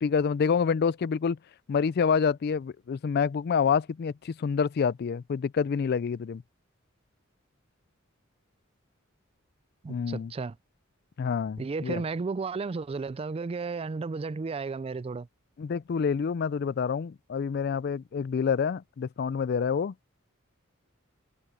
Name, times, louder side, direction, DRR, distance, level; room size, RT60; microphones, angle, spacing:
voice 1, 0.0-1.4 1.7-6.4 9.9-10.3 11.2-12.0 15.6-19.9, left 6 dB, 50° left, 0.3 m, -27 dB
voice 2, 9.8-10.6 11.6-15.3, right 4 dB, 30° right, 0.3 m, -33 dB
head